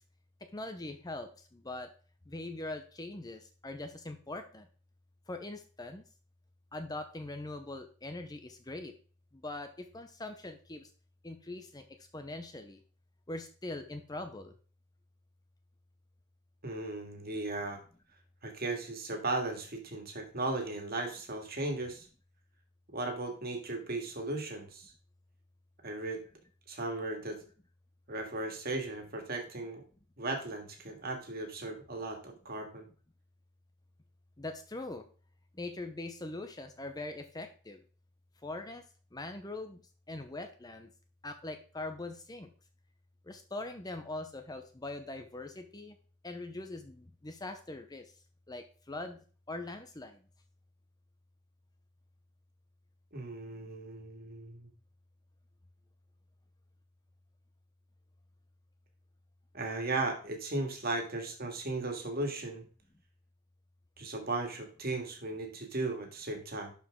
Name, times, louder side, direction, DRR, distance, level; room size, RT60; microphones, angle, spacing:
voice 1, 0.4-1.9 2.3-4.7 5.3-6.0 6.7-8.9 9.3-10.9 11.2-12.8 13.3-14.5 34.4-35.0 35.5-37.8 38.4-38.9 39.1-39.8 40.1-40.9 41.2-42.5 43.2-46.0 46.2-48.1 48.5-50.2, left 2 dB, 20° left, 7 dB, 0.7 m, -42 dB
voice 2, 16.6-17.8 18.4-22.1 22.9-24.9 25.8-26.2 26.7-27.4 28.1-29.8 30.2-32.9 53.1-54.7 59.5-62.6 64.0-66.7, right 2 dB, 45° right, 3 dB, 1.9 m, -36 dB
11.5 x 5.0 x 3.7 m, 0.39 s
head